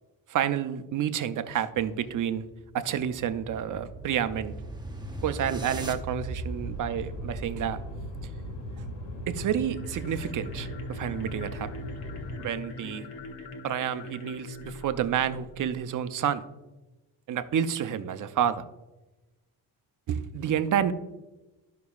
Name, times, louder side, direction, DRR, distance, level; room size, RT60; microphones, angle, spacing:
voice 1, 0.3-2.5 2.7-4.6 5.2-7.8 8.8-8.9 9.3-11.7 12.4-13.0 13.6-16.4 17.3-18.6 20.1-20.9, right 9 dB, 50° right, 12 dB, 0.6 m, -29 dB
sound 1, 2.5-8.6, right 1 dB, 10° right, 0.6 m, -39 dB
sound 2, 6.4-12.4, equal, 85° left, 1.8 m, -38 dB
sound 3, 9.6-15.9, left 2 dB, 65° left, 1.0 m, -43 dB
11.5 x 5.8 x 2.3 m, 1.0 s
cardioid pair, 130°, 40 cm